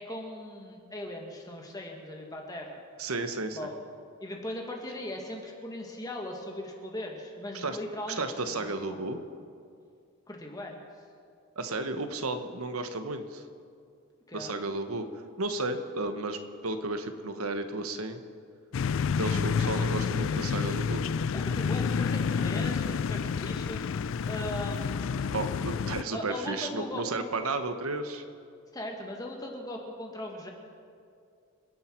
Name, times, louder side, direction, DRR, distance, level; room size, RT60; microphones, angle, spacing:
voice 1, 0.0-2.8 3.5-3.8 4.2-9.0 10.3-10.8 14.3-14.6 21.3-23.8 24.2-25.3 26.1-27.3 28.7-30.5, left 1 dB, 15° left, 1 dB, 1.8 m, -39 dB
voice 2, 3.0-3.7 7.5-7.8 8.2-9.2 11.6-13.4 14.3-15.1 15.4-18.2 19.2-21.0 25.3-28.2, right 2 dB, 80° right, 8 dB, 1.2 m, -33 dB
sound 1, 18.7-26.0, left 6 dB, 60° left, 0.4 m, -29 dB
28.5 x 10.5 x 4.6 m, 2.4 s
head